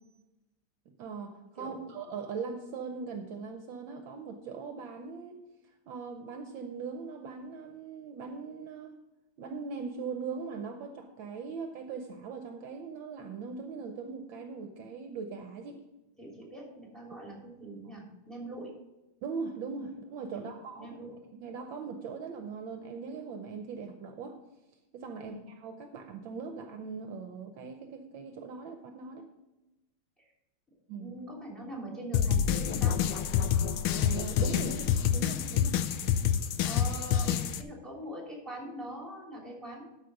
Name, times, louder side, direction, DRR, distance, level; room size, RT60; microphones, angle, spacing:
voice 1, 1.0-5.4 5.9-9.0 9.4-15.8 19.2-20.9 21.4-24.4 24.9-29.3 30.9-31.1 34.0-35.8, right 5 dB, 70° right, 5 dB, 1.4 m, -40 dB
voice 2, 16.2-18.8 20.3-21.1 25.2-25.4 31.0-33.0 36.6-39.9, right 1 dB, ahead, -2 dB, 3.0 m, -43 dB
sound 1, 32.1-37.6, left 9 dB, 75° left, 1.4 m, -27 dB
12.5 x 5.3 x 5.1 m, 1.0 s
omnidirectional pair, 2.3 m